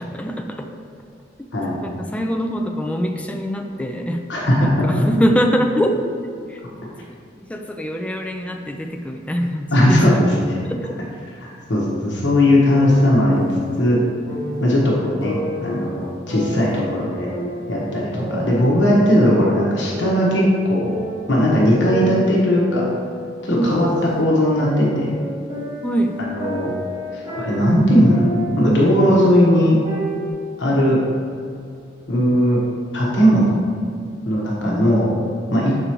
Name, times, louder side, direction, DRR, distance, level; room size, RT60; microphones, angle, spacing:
voice 1, 0.1-0.7 1.8-4.2 4.6-6.8 7.4-10.3 10.6-10.9 18.0-18.5 23.5-23.8 25.8-26.2 34.6-34.8, equal, 5° left, 4 dB, 0.3 m, -24 dB
voice 2, 4.3-4.8 9.7-10.5 11.7-13.4 13.8-14.0 14.6-17.3 17.7-20.9 21.3-22.9 23.4-23.9 24.1-25.2 26.3-26.7 27.1-28.2 28.6-29.8 30.6-31.0 32.1-32.6 32.9-33.5 34.2-35.1 35.5-35.7, equal, 70° left, -4 dB, 1.1 m, -17 dB
sound 1, 12.7-13.8 14.3-14.7 15.2-16.8 17.3-18.8 19.1-20.6 20.8-21.4 21.8-24.2 24.6-28.7 29.0-30.3, equal, 30° right, 1.5 m, -30 dB
6.6 x 4.8 x 3.0 m, 2.3 s
head